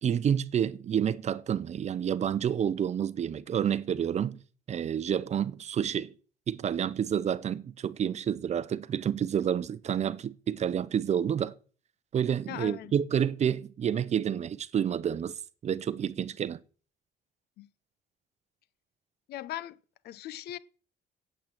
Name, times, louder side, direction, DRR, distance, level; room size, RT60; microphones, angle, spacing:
voice 1, 0.0-4.4 4.7-6.1 6.5-11.5 12.1-16.6, right 8 dB, 40° right, 0.7 m, -29 dB
voice 2, 12.5-12.9 17.6-17.7 19.3-19.8 20.0-20.6, left 13 dB, 70° left, 0.7 m, -39 dB
8.6 x 7.9 x 8.9 m
cardioid pair, 110°, 17 cm